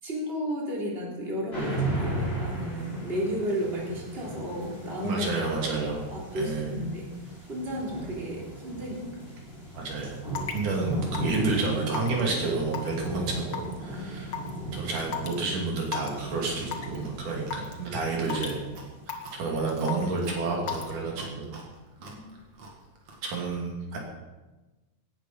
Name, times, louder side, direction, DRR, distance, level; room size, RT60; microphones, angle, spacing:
voice 1, 0.0-5.2 6.1-7.1 7.5-9.3 13.8-14.6 22.0-22.3, equal, 20° right, -3 dB, 3.4 m, -33 dB
sound 1, 1.5-19.3, right 2 dB, 20° left, 5.2 m, -36 dB
voice 2, 5.0-6.0 6.3-6.8 9.7-10.2 10.5-14.4 14.7-18.6 19.3-21.5 23.2-24.0, right 3 dB, 85° right, -1 dB, 4.3 m, -30 dB
Raindrop / Water tap faucet / Drip, 10.3-10.6 11.1-11.4 11.9-12.2 12.7-13.1 13.5-13.7 14.3-14.5 15.1-15.3 15.9-16.1 16.7-17.0 17.5-17.7 18.3-18.5 19.1-19.4 19.9-20.2 20.7-20.9, left 8 dB, 45° left, 1.8 m, -33 dB
Chewing mastication, 16.1-23.3, right 3 dB, 60° right, 3.4 m, -49 dB
17.5 x 10.0 x 5.7 m, 1.1 s
omnidirectional pair, 3.5 m